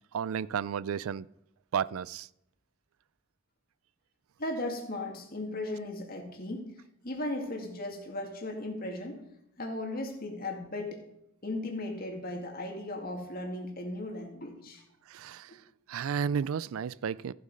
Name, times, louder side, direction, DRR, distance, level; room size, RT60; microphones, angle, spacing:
voice 1, 0.1-1.3 1.7-2.3 15.1-15.5 15.9-17.3, right 7 dB, 80° right, 0.4 m, -32 dB
voice 2, 4.4-6.7 7.0-9.2 9.6-11.0 11.4-14.8 15.5-15.6, left 1 dB, 45° left, 2.1 m, -36 dB
14.0 x 7.8 x 5.3 m
head